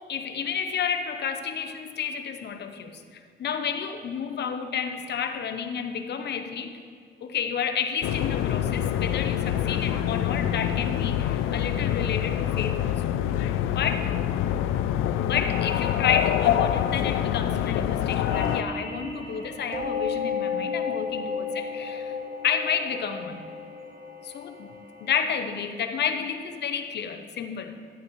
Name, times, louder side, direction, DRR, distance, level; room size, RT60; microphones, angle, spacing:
voice 1, 0.0-6.8 7.2-13.0 13.6-14.1 15.2-22.1 22.4-23.4 24.2-24.7 25.0-27.8, left 7 dB, 60° left, 6 dB, 0.9 m, -31 dB
sound 1, 8.0-18.6, left 10 dB, 90° left, 0.4 m, -26 dB
sound 2, 18.3-25.2, left 5 dB, 50° right, 2.7 m, -33 dB
12.0 x 10.0 x 3.2 m, 2.1 s
cardioid pair, 90°, 20 cm